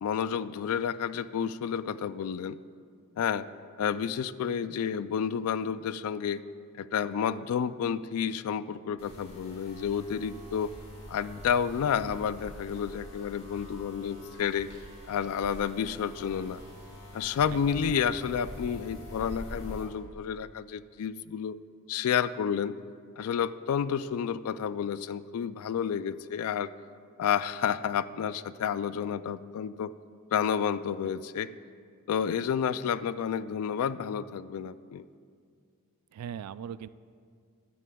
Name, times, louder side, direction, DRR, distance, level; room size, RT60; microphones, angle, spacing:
voice 1, 0.0-2.6 3.2-3.5 3.8-6.4 6.8-10.7 11.1-14.7 15.1-16.6 17.1-21.6 21.9-22.7 23.2-26.7 27.2-29.9 30.3-31.5 32.1-35.1, left 7 dB, 70° left, 16 dB, 0.3 m, -30 dB
sound 1, 9.0-19.8, equal, 30° left, 2.9 m, -45 dB
voice 2, 17.5-17.8 36.1-36.9, right 8 dB, 85° right, 16 dB, 0.3 m, -40 dB
16.5 x 11.0 x 2.3 m, 2.2 s
head